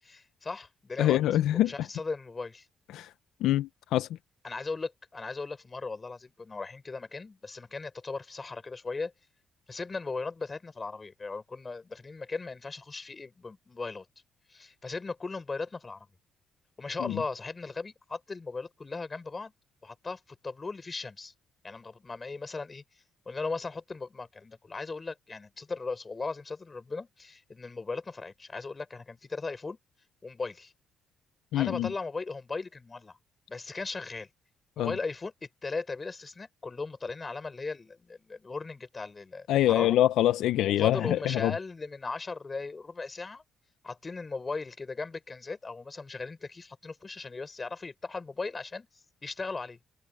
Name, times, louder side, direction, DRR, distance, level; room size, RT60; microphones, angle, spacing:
voice 1, 0.0-1.2 1.5-2.7 4.4-9.1 9.7-14.1 14.5-16.1 16.8-19.5 19.8-21.3 21.6-22.8 23.3-29.8 30.2-30.7 31.5-33.2 33.5-34.3 34.8-35.3 35.6-40.0 40.6-43.4 43.8-48.9 49.2-49.8, left 4 dB, 30° left, 6.0 m, -37 dB
voice 2, 1.0-1.7 2.9-3.1 3.4-4.1 17.0-17.2 31.5-31.9 34.8-34.9 39.5-41.5, left 13 dB, 85° left, 0.6 m, -25 dB
cardioid pair, 90°, 0 cm